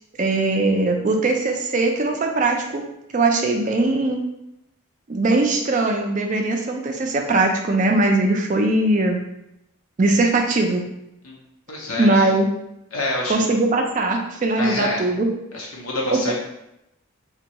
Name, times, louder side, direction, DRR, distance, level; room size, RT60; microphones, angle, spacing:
voice 1, 0.2-2.8 3.1-4.2 5.1-9.2 10.0-10.8 12.0-12.5 13.3-15.3 16.3-16.4, right 2 dB, 35° right, 3 dB, 0.4 m, -20 dB
voice 2, 11.7-12.3 12.9-13.5 14.5-15.0 15.5-16.3, left 1 dB, 80° left, -3 dB, 0.7 m, -27 dB
2.7 x 2.2 x 4.0 m, 0.85 s
head